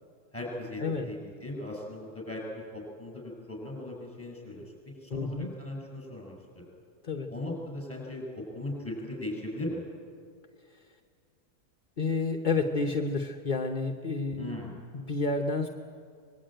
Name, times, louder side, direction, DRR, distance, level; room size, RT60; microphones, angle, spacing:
voice 1, 0.3-6.4 7.3-9.9 14.4-14.8, left 1 dB, 10° left, -1 dB, 7.3 m, -38 dB
voice 2, 5.1-5.5 7.0-7.3 12.0-15.7, left 3 dB, 35° left, 4 dB, 1.0 m, -30 dB
25.5 x 21.5 x 9.1 m, 2.2 s
omnidirectional pair, 1.7 m